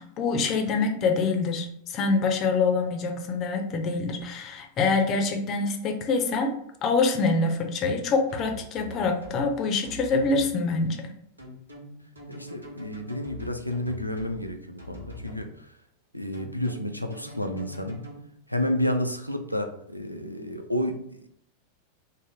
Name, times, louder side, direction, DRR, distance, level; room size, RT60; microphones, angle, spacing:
voice 1, 0.0-6.5 6.8-11.0, left 4 dB, 35° left, 4 dB, 0.5 m, -25 dB
sound 1, 8.3-9.4 9.8-10.5 11.4-14.4 14.8-15.4 16.3-18.2, left 1 dB, 80° right, 0.8 m, -43 dB
voice 2, 12.3-15.7 16.1-18.0 18.5-21.3, left 1 dB, 90° left, 5 dB, 0.3 m, -30 dB
3.7 x 2.0 x 3.5 m, 0.71 s
figure-of-eight pair, 90°, 0 cm